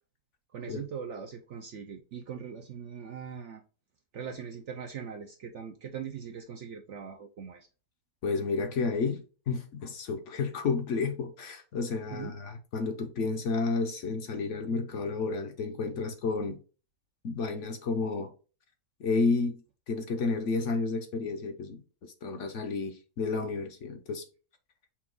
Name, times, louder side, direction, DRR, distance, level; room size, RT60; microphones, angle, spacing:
voice 1, 0.5-3.6 4.1-7.7 12.1-12.3, right 7 dB, 70° right, 0.7 m, -41 dB
voice 2, 8.2-16.6 17.2-18.3 19.0-24.2, left 4 dB, 55° left, 0.9 m, -31 dB
5.9 x 2.3 x 3.7 m
omnidirectional pair, 1.7 m